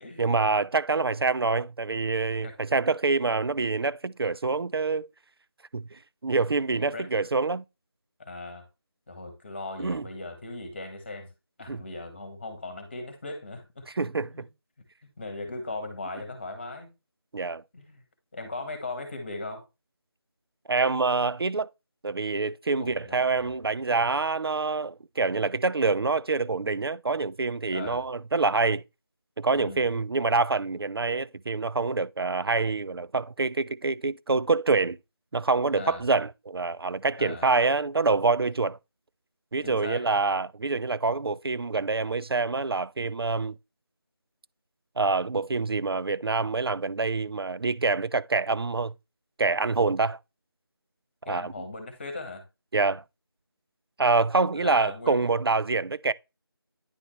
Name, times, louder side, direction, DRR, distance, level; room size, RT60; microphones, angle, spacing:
voice 1, 0.2-5.1 5.7-7.6 9.8-10.0 11.7-11.8 13.9-14.3 17.3-17.6 20.7-21.7 22.0-28.8 29.4-35.0 35.3-38.8 39.5-43.5 45.0-48.9 49.4-50.2 51.3-51.5 52.7-53.0 54.0-56.1, right 3 dB, 70° right, 0.4 m, -26 dB
voice 2, 6.7-7.1 8.2-8.7 9.1-11.3 11.6-14.4 15.2-16.9 17.7-18.0 18.3-19.6 22.8-23.5 27.7-28.0 29.5-29.9 35.8-36.0 37.2-37.5 39.6-40.1 51.2-52.4 54.5-55.2, left 2 dB, 25° left, 1.5 m, -38 dB
10.0 x 3.9 x 3.2 m
figure-of-eight pair, 165°, 13 cm